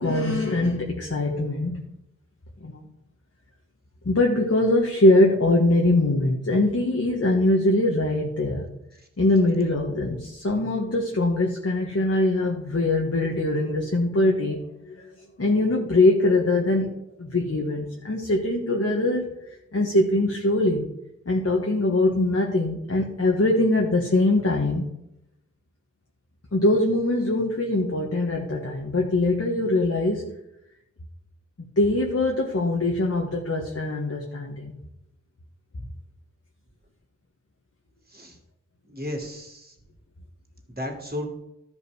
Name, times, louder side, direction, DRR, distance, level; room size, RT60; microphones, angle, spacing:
voice 1, 0.0-1.8 2.6-2.8 4.0-8.7 9.2-15.1 15.4-16.9 17.2-19.3 19.7-20.9 21.2-24.9 26.5-30.3 31.6-34.8, left 2 dB, 50° left, 0 dB, 1.5 m, -22 dB
voice 2, 38.9-39.7 40.7-41.3, left 1 dB, 30° right, 2 dB, 2.5 m, -33 dB
13.5 x 5.5 x 4.8 m, 0.84 s
wide cardioid pair, 40°, 30 cm